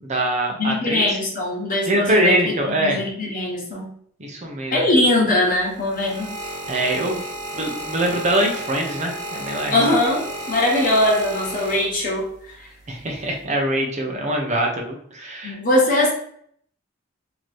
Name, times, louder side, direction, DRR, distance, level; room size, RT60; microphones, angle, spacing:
voice 1, 0.0-1.2 1.9-3.0 4.2-4.8 6.7-7.2 7.5-9.9 12.9-15.6, right 1 dB, 35° right, 1 dB, 0.7 m, -23 dB
voice 2, 0.6-3.9 4.7-6.4 9.7-12.7 15.4-16.1, left 1 dB, 45° left, -3 dB, 1.2 m, -21 dB
sound 1, 5.5-12.3 13.1-13.4, right 1 dB, 90° right, 1.2 m, -33 dB
3.1 x 2.8 x 4.2 m, 0.64 s
head